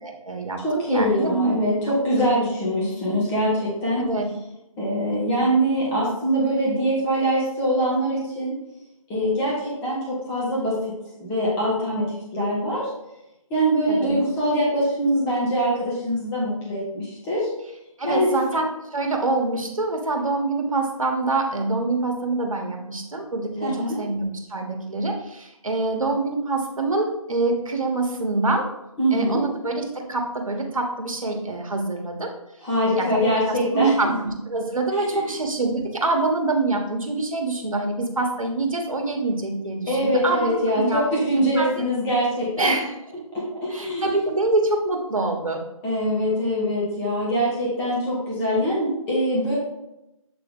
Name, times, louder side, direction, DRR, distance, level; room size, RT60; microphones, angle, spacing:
voice 1, 0.0-1.7 4.0-4.3 12.4-12.5 13.9-14.1 18.0-28.7 29.1-32.3 33.0-33.2 33.5-41.1 41.6-41.7 42.6-42.9 43.7-45.6, right 2 dB, 70° right, 3 dB, 1.4 m, -25 dB
voice 2, 0.6-4.0 4.8-8.5 9.1-10.9 11.2-12.9 13.5-17.5 18.0-18.3 23.6-24.0 29.0-29.4 32.6-34.1 34.9-35.3 39.9-42.7 43.3-44.1 45.8-49.6, equal, 10° left, -6 dB, 1.1 m, -23 dB
7.8 x 3.4 x 3.7 m, 0.89 s
figure-of-eight pair, 155°, 18 cm